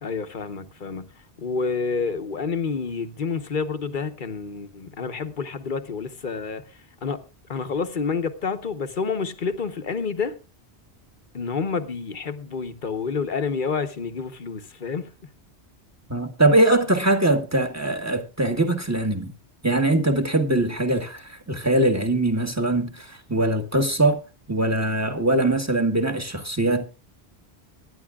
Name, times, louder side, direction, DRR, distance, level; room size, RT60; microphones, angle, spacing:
voice 1, 0.0-1.1 1.4-6.6 7.0-7.2 7.5-10.3 11.3-15.1, left 5 dB, 50° left, 1.1 m, -28 dB
voice 2, 16.1-19.3 19.6-24.2 24.5-26.8, right 2 dB, 15° right, 1.4 m, -22 dB
24.0 x 11.0 x 2.4 m
omnidirectional pair, 1.1 m